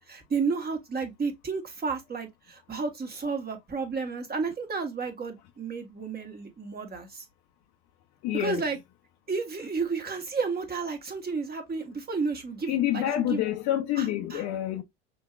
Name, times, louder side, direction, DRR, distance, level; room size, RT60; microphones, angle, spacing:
voice 1, 0.1-7.2 8.3-8.8 9.3-13.4 13.9-14.5, right 4 dB, 25° right, 1.5 m, -32 dB
voice 2, 8.2-8.6 12.7-14.8, left 12 dB, 55° left, 0.8 m, -27 dB
6.0 x 2.8 x 2.5 m
hypercardioid pair, 70°, 35 cm